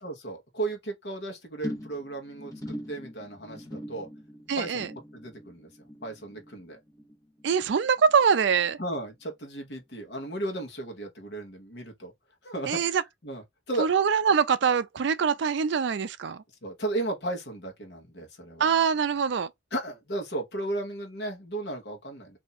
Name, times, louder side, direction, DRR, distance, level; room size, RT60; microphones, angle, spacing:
voice 1, 0.0-4.1 4.6-4.8 5.1-5.7 6.0-6.8 8.8-12.1 12.4-13.9 16.6-18.7 19.7-22.4, right 2 dB, 55° left, 1.2 m, -35 dB
sound 1, 1.6-8.2 8.5-8.9 9.2-9.3, equal, 15° left, 0.8 m, -42 dB
voice 2, 4.5-4.9 7.4-8.8 12.7-13.0 13.8-16.4 18.6-19.5, right 6 dB, 60° right, 0.4 m, -24 dB
2.8 x 2.5 x 4.0 m
head